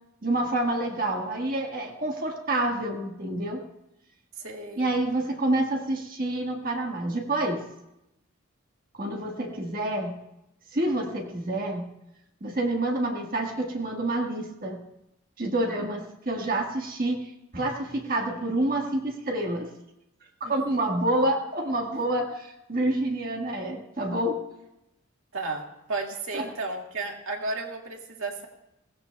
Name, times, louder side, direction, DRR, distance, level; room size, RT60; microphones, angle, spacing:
voice 1, 0.2-3.6 4.8-7.6 8.9-10.2 10.7-11.9 12.4-14.8 15.4-19.7 20.4-24.4 26.3-26.5, right 1 dB, 45° right, 1 dB, 1.5 m, -28 dB
voice 2, 4.3-4.9 20.4-20.9 21.9-22.1 25.3-28.5, right 3 dB, 75° right, 1 dB, 2.0 m, -34 dB
21.5 x 17.0 x 2.3 m, 0.88 s
head